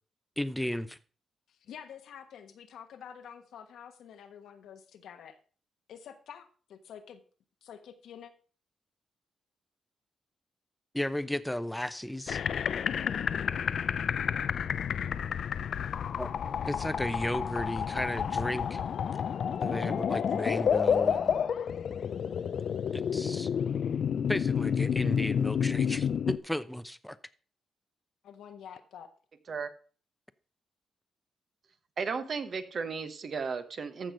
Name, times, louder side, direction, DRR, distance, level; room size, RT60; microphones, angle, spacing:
voice 1, 0.4-1.0 10.9-12.4 16.2-18.8 19.6-21.3 22.9-23.5 24.3-27.2, left 1 dB, 5° left, 14 dB, 0.7 m, -34 dB
voice 2, 1.5-5.4 5.9-7.2 7.6-8.3 28.2-29.1, left 8 dB, 90° left, 7 dB, 1.3 m, -48 dB
sound 1, 12.3-26.4, left 7 dB, 70° left, 0.5 m, -30 dB
voice 3, 32.0-34.1, right 5 dB, 55° right, 9 dB, 1.3 m, -34 dB
14.5 x 6.0 x 5.0 m, 0.40 s
cardioid pair, 95°, 0 cm